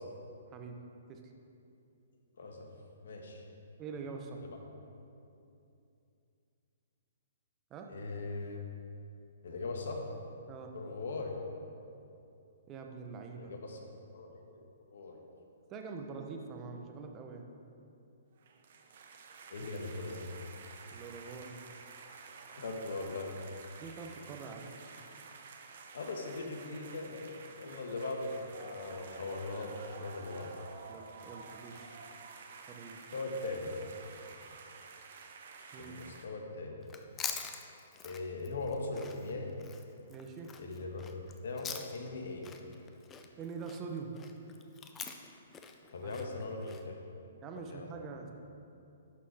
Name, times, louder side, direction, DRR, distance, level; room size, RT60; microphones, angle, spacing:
voice 1, 2.4-2.7 3.0-3.4 7.9-8.6 9.4-10.0 10.7-11.4 13.4-13.8 14.1-14.6 14.9-15.2 19.5-20.3 22.5-23.3 25.9-30.5 33.1-33.7 35.8-36.7 38.0-39.5 40.6-41.0 41.4-42.5 45.9-46.9 47.5-47.9, left 3 dB, 70° left, 2 dB, 1.3 m, -40 dB
voice 2, 3.8-4.4 7.7-7.9 10.5-10.7 12.7-13.5 15.7-17.4 19.6-19.7 20.9-21.5 23.8-24.6 30.9-31.9 32.7-33.0 35.7-35.9 40.1-40.5 43.4-44.1 46.0-46.2 47.4-48.3, right 5 dB, 25° right, 3 dB, 0.8 m, -44 dB
sound 1, 18.4-36.3, right 5 dB, 60° right, 0.8 m, -51 dB
Chewing mastication, 36.8-42.2 42.4-46.8, left 6 dB, 15° left, 0.5 m, -45 dB
11.5 x 4.1 x 4.9 m, 2.7 s
hypercardioid pair, 150°, 0 cm